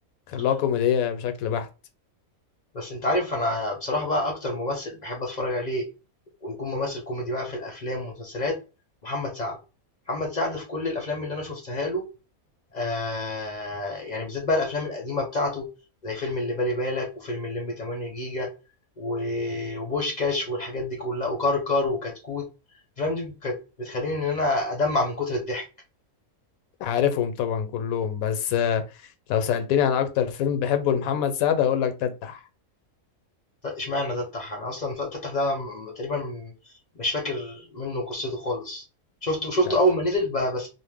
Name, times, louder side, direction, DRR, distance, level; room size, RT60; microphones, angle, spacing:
voice 1, 0.3-1.7 26.8-28.8 29.3-32.4, left 8 dB, 75° left, 1.0 m, -24 dB
voice 2, 2.7-5.8 6.4-8.6 9.0-9.6 10.1-12.1 12.7-15.7 16.0-18.5 19.0-22.5 23.0-25.7 33.6-38.8 39.2-40.7, left 1 dB, 45° left, 0.6 m, -28 dB
2.5 x 2.1 x 3.3 m
omnidirectional pair, 1.5 m